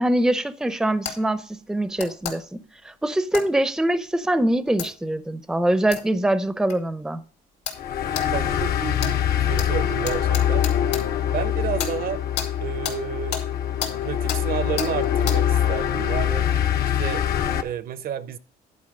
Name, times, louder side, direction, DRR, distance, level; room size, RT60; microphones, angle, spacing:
voice 1, 0.0-2.6 2.8-7.2, right 1 dB, 5° right, 0.6 m, -23 dB
sound 1, 1.0-1.2 2.0-2.4 3.3-3.5 4.8-4.9 5.9-6.0 6.7-6.8 7.6-7.8 8.1-8.3 9.0-9.1 9.6-9.7 10.0-11.0 11.8-11.9 12.4-12.5 12.8-13.0 13.3-13.4 13.8-13.9 14.3-14.4 14.8-14.9 15.3-15.4, left 8 dB, 85° left, 2.7 m, -30 dB
sound 2, 7.8-17.6, left 10 dB, 70° left, 1.1 m, -24 dB
voice 2, 8.3-9.2 9.5-10.7 11.3-12.2 12.6-13.4 14.0-16.5 17.0-17.2 17.6-18.4, right 9 dB, 60° right, 0.7 m, -30 dB
11.0 x 4.6 x 6.3 m
cardioid pair, 110°, 17 cm